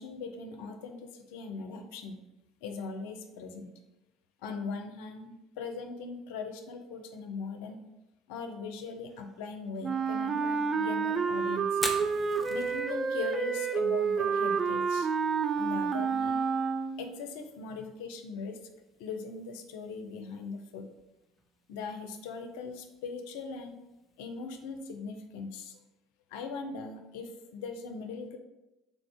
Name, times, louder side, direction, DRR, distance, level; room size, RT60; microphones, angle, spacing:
voice 1, 0.0-2.2 2.6-3.7 4.4-7.8 8.3-11.8 12.5-15.1 15.5-16.4 17.0-18.6 19.0-20.9 21.7-23.8 24.2-25.8 26.3-28.4, left 4 dB, 70° left, 5 dB, 0.5 m, -40 dB
Wind instrument woodwind instrument, 9.8-17.2, right 5 dB, 35° right, 0.3 m, -29 dB
Fire, 11.7-25.6, equal, 5° right, 0.8 m, -47 dB
3.9 x 2.5 x 4.7 m, 0.98 s
hypercardioid pair, 65°, 0 cm